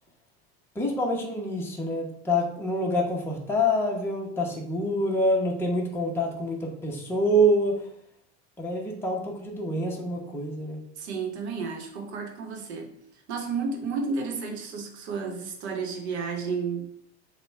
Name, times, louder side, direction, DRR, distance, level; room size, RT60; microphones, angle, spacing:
voice 1, 0.7-7.9 8.6-10.8, equal, 5° left, -2 dB, 0.9 m, -26 dB
voice 2, 11.0-12.9 13.3-16.9, right 5 dB, 90° right, 2 dB, 1.0 m, -32 dB
6.5 x 2.3 x 3.3 m, 0.68 s
supercardioid pair, 105°, 33 cm